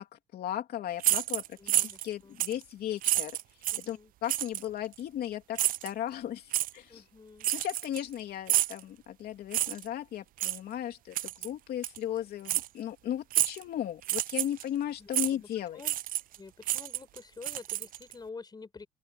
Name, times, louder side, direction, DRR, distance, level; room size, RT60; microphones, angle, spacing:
voice 1, 0.0-3.4 3.9-7.0 7.5-15.8, left 11 dB, 65° left, 3.1 m, -36 dB
sound 1, 1.0-2.1 2.4-2.6 3.0-3.9 4.3-4.6 5.5-5.9 6.5-6.7 7.4-8.1 8.5-8.8 9.5-9.9 10.4-10.6 11.1-11.5 11.8-12.0 12.5-12.7 13.3-13.6 14.0-14.6 15.1-15.3 15.8-16.4 16.6-18.1, right 14 dB, 55° right, 0.4 m, -29 dB
voice 2, 1.6-2.4 3.7-4.1 6.9-7.5 15.0-15.5 15.7-16.0 16.4-18.9, left 4 dB, 25° left, 5.5 m, -48 dB
open air
cardioid pair, 110°, 17 cm